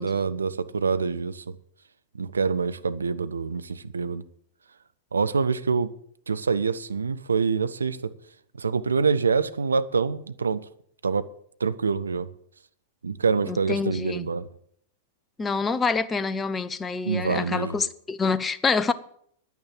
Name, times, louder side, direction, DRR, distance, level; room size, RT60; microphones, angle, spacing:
voice 1, 0.0-1.5 2.2-4.2 5.1-5.9 6.3-8.1 8.6-10.6 11.0-11.3 11.6-12.3 13.0-14.5 17.1-17.8, right 5 dB, 75° right, 0.6 m, -26 dB
voice 2, 13.4-14.3 15.4-18.9, left 4 dB, 15° left, 0.7 m, -26 dB
10.5 x 9.1 x 7.7 m
figure-of-eight pair, 95°, 0 cm